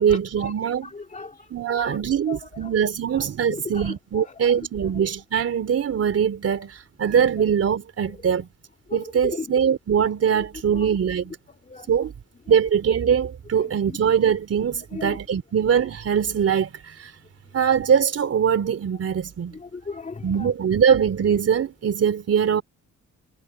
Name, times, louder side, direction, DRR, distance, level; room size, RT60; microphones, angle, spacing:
voice 1, 0.0-0.9 1.5-8.5 8.9-11.4 11.9-12.1 12.5-17.1 17.5-19.6 20.2-22.6, right 7 dB, 50° right, 3.4 m, -22 dB
voice 2, 0.8-2.0 2.3-2.7 3.2-4.6 8.9-9.5 10.7-10.9 11.7-11.9 12.5-12.6 13.9-14.0 14.9-15.2 19.5-20.5, left 4 dB, 25° left, 2.3 m, -37 dB
cardioid pair, 90°, 30 cm